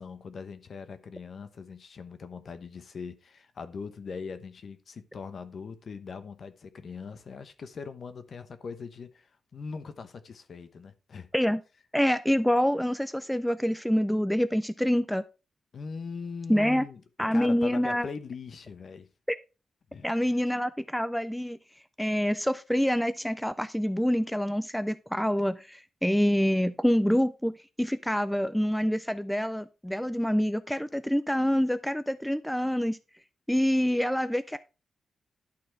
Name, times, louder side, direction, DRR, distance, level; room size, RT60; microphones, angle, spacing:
voice 1, 0.0-11.3 15.7-17.0 17.3-19.1 19.9-20.4, left 5 dB, 50° left, 1.0 m, -41 dB
voice 2, 11.9-15.2 16.5-16.8 17.2-18.1 19.3-19.4 20.0-21.6 22.0-27.5 27.8-33.0 33.5-34.6, equal, ahead, 0.3 m, -26 dB
11.5 x 4.3 x 4.6 m
wide cardioid pair, 145°, 0 cm